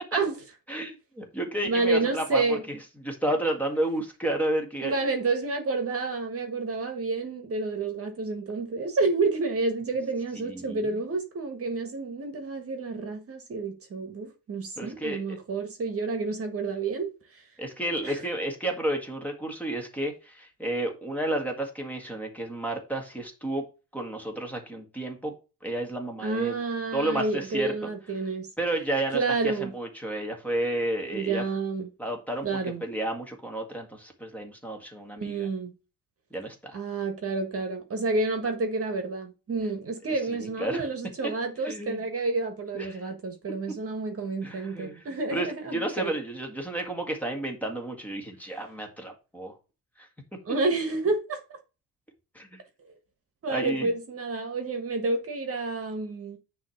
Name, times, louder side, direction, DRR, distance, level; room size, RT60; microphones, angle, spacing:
voice 1, 0.7-5.0 10.4-11.0 14.8-15.4 17.6-23.7 23.9-25.3 25.6-26.6 26.9-27.9 28.6-31.4 32.0-35.5 36.3-36.8 40.3-40.9 41.2-41.3 41.6-42.0 42.7-43.0 44.4-49.5 50.0-50.1 52.4-52.6 53.5-53.9, right 1 dB, 5° left, 1.8 m, -31 dB
voice 2, 1.6-2.6 4.8-17.4 18.0-18.2 26.2-28.5 29.1-29.7 31.1-31.9 32.4-32.8 35.2-35.7 36.7-46.1 50.5-51.4 53.4-56.4, right 3 dB, 40° right, 1.5 m, -29 dB
9.9 x 3.3 x 5.8 m
cardioid pair, 170°, 37 cm